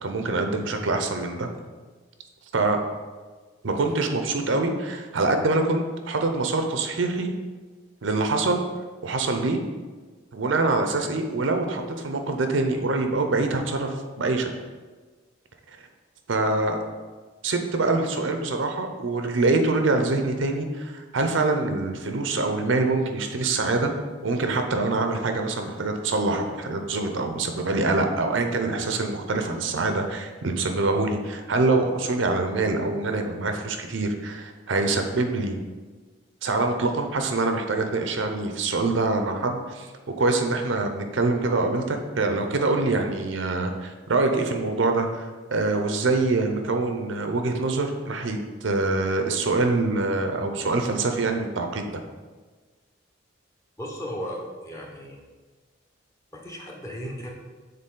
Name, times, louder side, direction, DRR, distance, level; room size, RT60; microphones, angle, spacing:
voice 1, 0.0-1.5 2.5-2.8 3.6-7.3 8.0-8.6 9.0-9.6 10.3-14.5 16.3-16.8 17.4-23.9 24.2-35.6 36.4-39.9 40.2-51.9, right 3 dB, 75° right, 5 dB, 0.6 m, -25 dB
voice 2, 53.8-55.2 56.3-57.3, equal, 15° left, -2 dB, 0.8 m, -35 dB
6.6 x 3.9 x 3.8 m, 1.4 s
head